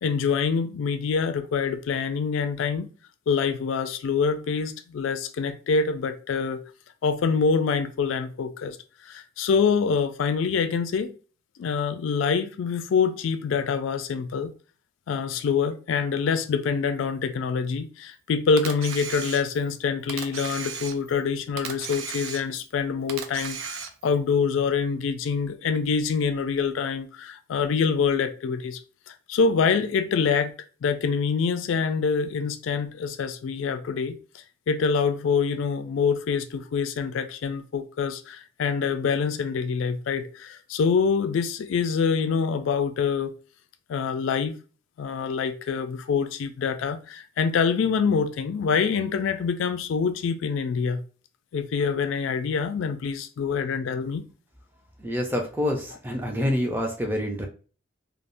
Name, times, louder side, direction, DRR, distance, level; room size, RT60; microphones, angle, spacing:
voice 1, 0.0-2.9 3.3-6.6 7.0-8.8 9.0-11.1 11.6-14.5 15.1-28.8 29.1-30.5 30.8-34.2 34.7-43.3 43.9-44.5 45.0-51.0 51.5-54.3, left 5 dB, 70° left, 0.3 m, -25 dB
Camera, 18.6-19.7 20.1-21.2 21.6-22.7 23.1-24.1, right 7 dB, 80° right, 0.4 m, -35 dB
voice 2, 55.0-57.5, left 1 dB, 10° right, 0.4 m, -27 dB
3.4 x 2.0 x 2.5 m
head